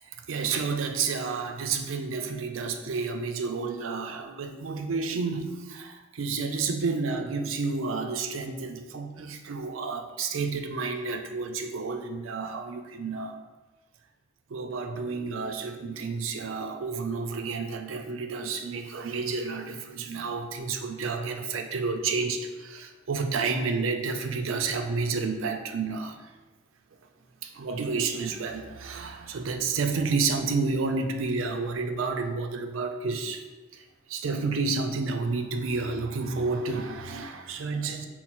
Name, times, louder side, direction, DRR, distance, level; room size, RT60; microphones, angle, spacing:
voice 1, 0.1-13.4 14.5-26.2 27.4-33.4 33.7-38.1, right 4 dB, 70° right, 5 dB, 0.5 m, -30 dB
5.9 x 2.0 x 4.1 m, 1.2 s
head